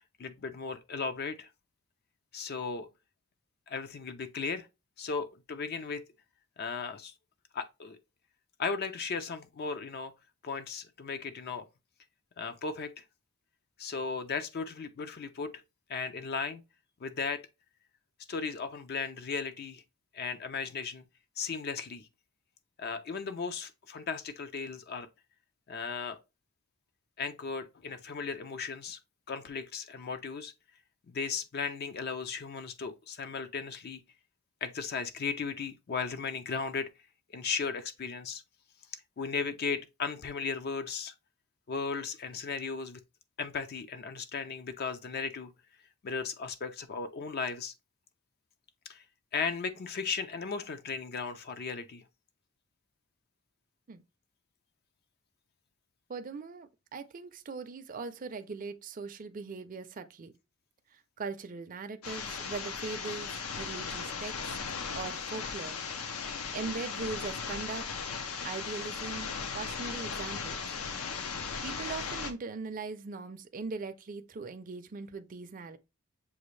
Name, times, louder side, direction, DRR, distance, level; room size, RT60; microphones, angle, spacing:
voice 1, 0.2-1.5 2.3-2.9 3.7-4.7 5.0-6.0 6.6-7.1 7.5-8.0 8.6-10.1 10.4-11.7 12.4-13.0 13.8-15.5 15.9-16.6 17.0-17.5 18.3-19.8 20.1-21.0 21.4-22.1 22.8-25.1 25.7-26.2 27.2-29.0 29.3-30.5 31.1-34.0 34.6-36.9 37.3-38.4 39.2-41.1 41.7-43.0 43.4-45.5 46.0-47.7 48.9-49.0 49.3-52.0, left 5 dB, 45° left, 0.4 m, -36 dB
voice 2, 56.1-60.3 60.9-64.5 65.0-65.8 66.5-67.9 68.4-70.6 71.2-71.4 71.6-75.8, right 4 dB, 40° right, 0.4 m, -40 dB
sound 1, 62.0-72.3, left 5 dB, 85° left, 0.7 m, -37 dB
7.0 x 2.4 x 3.1 m
head